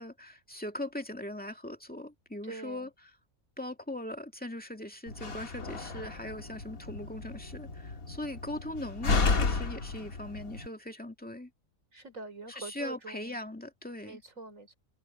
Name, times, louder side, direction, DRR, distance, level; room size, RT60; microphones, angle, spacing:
voice 1, 0.0-2.9 3.6-11.5 12.5-14.2, left 1 dB, 5° left, 2.1 m, -40 dB
voice 2, 2.4-2.9 11.9-13.4 14.0-14.7, right 3 dB, 70° right, 4.9 m, -44 dB
Slam, 5.1-10.7, left 4 dB, 85° left, 2.5 m, -33 dB
omnidirectional pair, 1.4 m